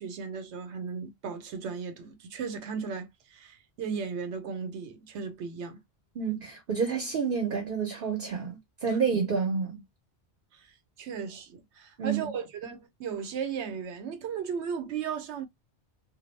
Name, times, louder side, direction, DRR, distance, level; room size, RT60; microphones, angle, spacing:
voice 1, 0.0-5.8 8.9-9.0 10.5-10.6 11.0-15.5, right 6 dB, 80° right, 0.9 m, -36 dB
voice 2, 6.2-9.8 12.0-12.3, right 6 dB, 60° right, 0.8 m, -29 dB
2.3 x 2.0 x 3.1 m
omnidirectional pair, 1.1 m